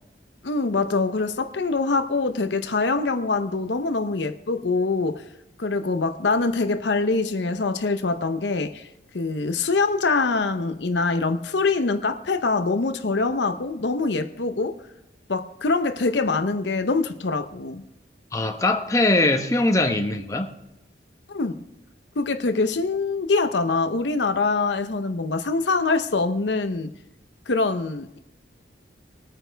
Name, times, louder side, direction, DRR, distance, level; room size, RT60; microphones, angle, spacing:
voice 1, 0.4-5.2 5.6-8.9 9.1-14.8 15.3-17.8 21.3-21.6 22.2-26.9 27.5-28.2, left 3 dB, 70° left, 0.7 m, -24 dB
voice 2, 18.3-20.5, left 2 dB, 15° left, 0.9 m, -21 dB
22.0 x 9.1 x 3.4 m
head